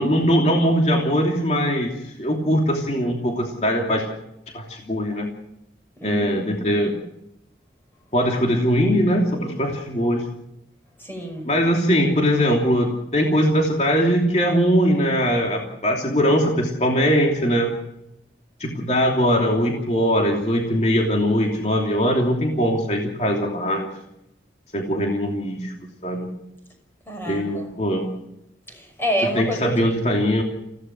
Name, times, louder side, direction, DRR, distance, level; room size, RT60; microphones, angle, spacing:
voice 1, 0.0-4.1 4.5-5.3 6.0-6.9 8.1-10.2 11.4-17.7 18.6-23.9 24.7-25.7 26.0-26.3 27.3-28.0 29.2-30.4, equal, 40° left, 0 dB, 3.0 m, -21 dB
voice 2, 11.0-11.5 27.1-27.6 28.7-30.2, equal, 15° left, 3 dB, 6.1 m, -28 dB
28.5 x 17.0 x 6.2 m, 0.82 s
head